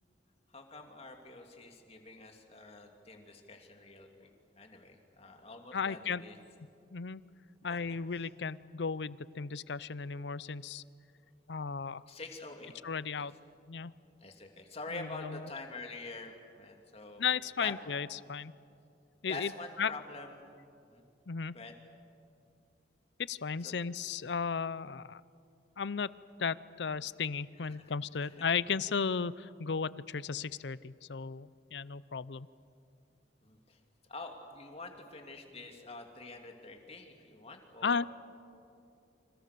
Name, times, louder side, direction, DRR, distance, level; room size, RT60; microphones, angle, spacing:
voice 1, 0.5-4.3 4.6-6.4 7.6-8.3 12.1-12.7 13.2-13.3 14.2-17.7 19.3-20.6 20.8-21.0 21.5-21.7 23.6-23.8 27.6-27.9 28.2-28.3 33.4-33.8 34.1-38.1, left 3 dB, 35° left, 3 dB, 2.9 m, -46 dB
voice 2, 5.7-6.2 6.9-7.2 7.6-10.8 11.5-12.0 12.8-13.3 13.7-13.9 14.9-15.5 17.2-18.5 19.2-19.5 19.8-19.9 21.3-21.5 23.2-25.2 25.8-26.1 26.4-32.5 37.8-38.0, left 5 dB, 70° left, 18 dB, 0.6 m, -35 dB
30.0 x 26.5 x 6.9 m, 2.5 s
head